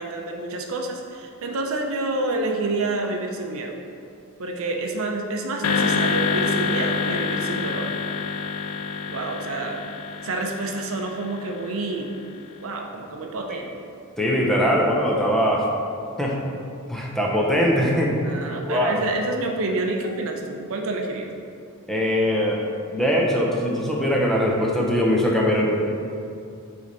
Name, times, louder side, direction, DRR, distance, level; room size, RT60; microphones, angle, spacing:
voice 1, 0.0-3.8 4.4-8.0 9.1-9.9 10.2-12.1 12.6-13.7 18.2-21.3, right 2 dB, 65° right, 2 dB, 0.6 m, -28 dB
sound 1, 5.6-12.0, left 5 dB, 75° left, 0.4 m, -27 dB
voice 2, 14.2-15.7 16.2-16.3 16.9-18.1 18.7-19.0 21.9-22.6 22.9-25.8, equal, ahead, -3 dB, 0.7 m, -21 dB
7.7 x 3.4 x 4.0 m, 2.5 s
head